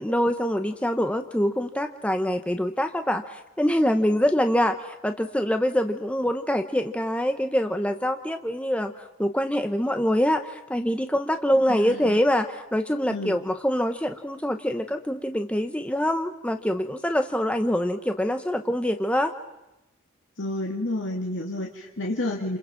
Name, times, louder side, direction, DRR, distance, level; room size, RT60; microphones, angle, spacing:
voice 1, 0.0-8.9 9.2-19.3, equal, 5° left, 7 dB, 0.9 m, -25 dB
voice 2, 11.7-12.2 13.1-13.4 20.4-22.6, left 1 dB, 65° left, 0 dB, 2.0 m, -30 dB
29.0 x 27.5 x 5.9 m, 0.94 s
head